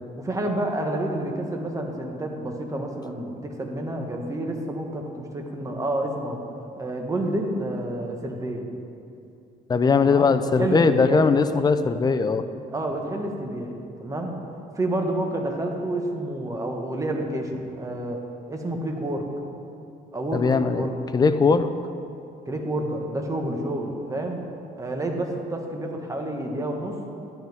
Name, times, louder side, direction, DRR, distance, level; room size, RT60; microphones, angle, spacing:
voice 1, 0.2-6.4 6.8-8.7 10.0-10.3 10.6-11.2 12.7-14.4 14.7-18.2 18.5-19.2 20.1-20.9 22.5-24.4 24.8-27.0, right 1 dB, 20° right, 2 dB, 1.4 m, -29 dB
voice 2, 9.7-12.4 20.3-20.9 21.1-21.7, left 4 dB, 25° left, 10 dB, 0.5 m, -20 dB
13.0 x 10.5 x 3.6 m, 2.6 s
cardioid pair, 110°, 17 cm